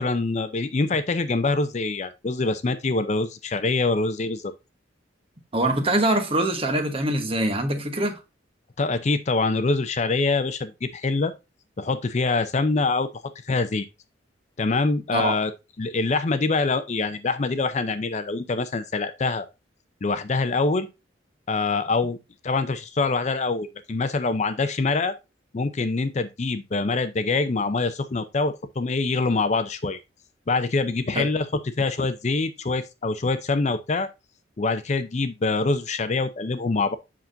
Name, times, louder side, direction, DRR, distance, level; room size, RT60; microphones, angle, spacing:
voice 1, 0.0-4.5 8.8-11.3 11.8-13.1 13.4-13.9 14.6-15.5 15.8-19.5 20.0-20.9 21.5-22.2 22.4-25.1 25.5-30.0 30.5-34.1 34.6-37.0, left 3 dB, 35° left, 0.5 m, -24 dB
voice 2, 5.5-8.2 15.1-15.4 31.1-31.2, right 1 dB, 30° right, 1.1 m, -23 dB
7.5 x 5.8 x 2.6 m
head